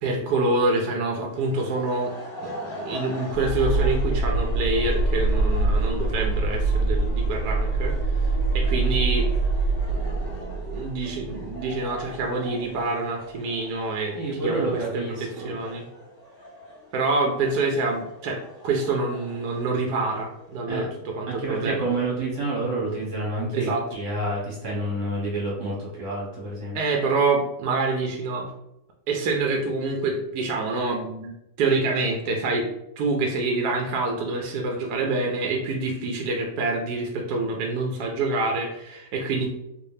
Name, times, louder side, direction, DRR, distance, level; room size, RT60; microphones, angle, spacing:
voice 1, 0.0-2.1 2.4-7.9 8.5-9.3 9.9-15.8 16.9-18.4 18.6-21.8 23.5-23.8 26.7-28.5 29.1-31.3 31.6-32.7 33.0-39.5, right 3 dB, 75° right, 1 dB, 1.1 m, -26 dB
sound 1, 1.2-20.6, left 1 dB, 50° left, 1.2 m, -43 dB
sound 2, 3.3-12.2, right 2 dB, 90° left, 1.4 m, -24 dB
voice 2, 14.1-15.6 20.7-20.8 21.3-26.8, right 2 dB, 50° right, -4 dB, 1.3 m, -29 dB
3.2 x 3.2 x 2.7 m, 0.82 s
omnidirectional pair, 1.8 m